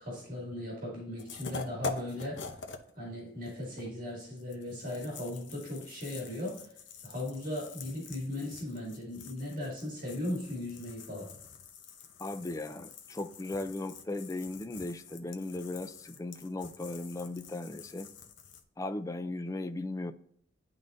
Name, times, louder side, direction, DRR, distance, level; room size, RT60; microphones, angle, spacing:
voice 1, 0.0-2.6 2.9-6.7 7.0-11.3, left 1 dB, 45° right, 2.2 m, -37 dB
sound 1, 1.2-2.9 3.2-18.6, left 4 dB, 75° left, 0.7 m, -46 dB
voice 2, 12.2-18.1 18.8-20.1, left 2 dB, 15° left, 0.4 m, -37 dB
10.5 x 3.9 x 2.6 m
head